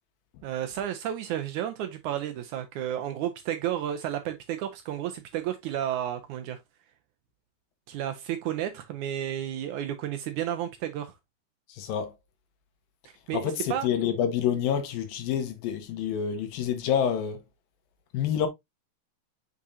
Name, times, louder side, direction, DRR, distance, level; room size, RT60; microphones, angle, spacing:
voice 1, 0.4-6.6 7.9-11.2 13.1-13.9, right 11 dB, 75° right, 1.9 m, -32 dB
voice 2, 11.7-12.1 13.3-17.4 18.1-18.5, left 9 dB, 85° left, 3.0 m, -28 dB
6.8 x 5.1 x 2.7 m
omnidirectional pair, 4.0 m